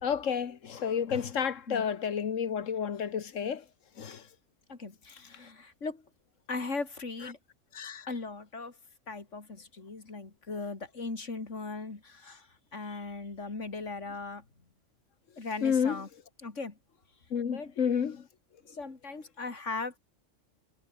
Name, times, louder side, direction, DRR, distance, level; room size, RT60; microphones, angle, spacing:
voice 1, 0.0-3.6 4.0-4.2 7.7-8.1 15.6-15.9 17.3-18.2, left 7 dB, 90° left, 1.6 m, -30 dB
voice 2, 4.7-6.0 6.5-7.4 8.1-8.8 9.1-14.4 15.4-16.1 16.4-16.8 17.4-17.7 18.6-20.0, left 3 dB, 75° left, 3.4 m, -38 dB
omnidirectional pair, 1.3 m